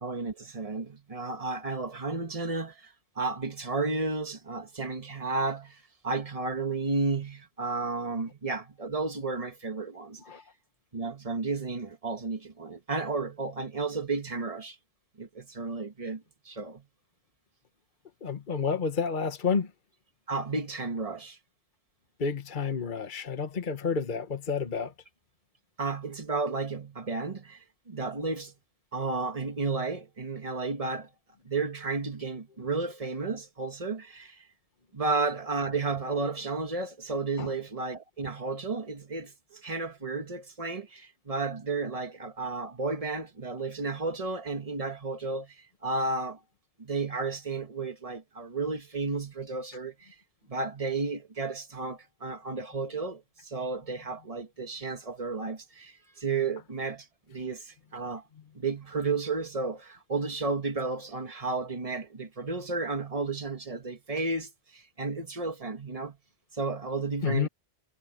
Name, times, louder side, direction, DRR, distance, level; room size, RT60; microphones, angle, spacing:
voice 1, 0.0-10.2 10.9-14.8 15.2-16.8 20.3-21.4 25.8-28.5 28.9-31.1 31.5-34.5 34.9-46.4 46.8-50.2 50.5-58.2 58.5-66.2 66.5-67.5, right 3 dB, 30° right, 1.8 m, -33 dB
voice 2, 18.2-19.7 22.2-24.9 37.4-37.5 67.2-67.5, left 5 dB, 45° left, 1.3 m, -30 dB
omnidirectional pair, 1.1 m